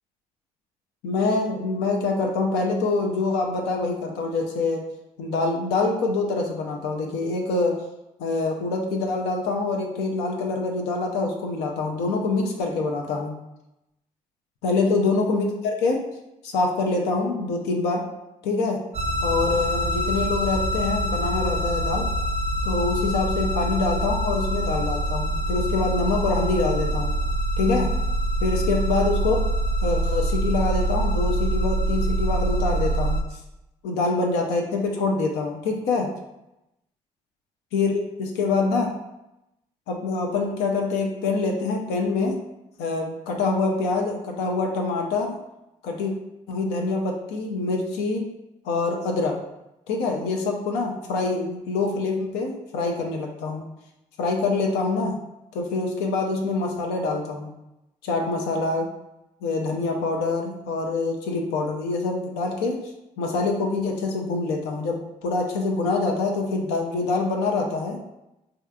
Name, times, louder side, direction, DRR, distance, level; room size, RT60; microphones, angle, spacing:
voice 1, 1.0-4.8 5.2-7.8 8.2-13.3 14.6-16.0 16.4-18.0 18.4-18.8 19.2-22.1 22.6-27.2 27.6-27.9 28.4-29.4 29.8-33.4 33.8-36.1 37.7-38.9 39.9-42.4 42.8-45.4 45.8-46.1 46.5-48.3 48.6-49.3 49.9-53.7 54.2-55.1 55.5-57.5 58.0-58.9 59.4-62.8 63.2-68.0, left 3 dB, 80° left, 1 dB, 0.4 m, -25 dB
sound 1, 18.9-33.2, right 1 dB, 40° right, 0.4 m, -25 dB
2.7 x 2.4 x 2.2 m, 0.91 s
hypercardioid pair, 50°, 17 cm